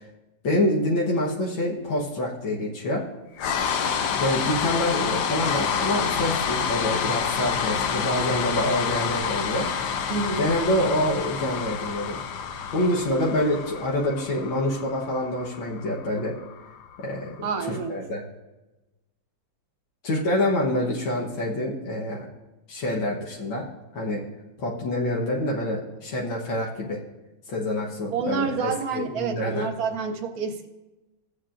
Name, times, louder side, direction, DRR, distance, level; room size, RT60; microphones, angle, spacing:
voice 1, 0.4-3.0 4.1-9.7 10.4-12.2 12.7-16.4 17.0-18.2 20.0-22.3 22.7-23.7 23.9-24.2 24.6-27.0 27.5-29.7, left 1 dB, 85° left, -3 dB, 2.0 m, -26 dB
sound 1, 3.4-17.5, left 7 dB, 65° left, 1.2 m, -28 dB
voice 2, 10.1-10.5 17.4-18.1 28.1-30.7, right 5 dB, 60° right, 5 dB, 1.1 m, -28 dB
16.5 x 8.1 x 2.5 m, 1.1 s
omnidirectional pair, 2.1 m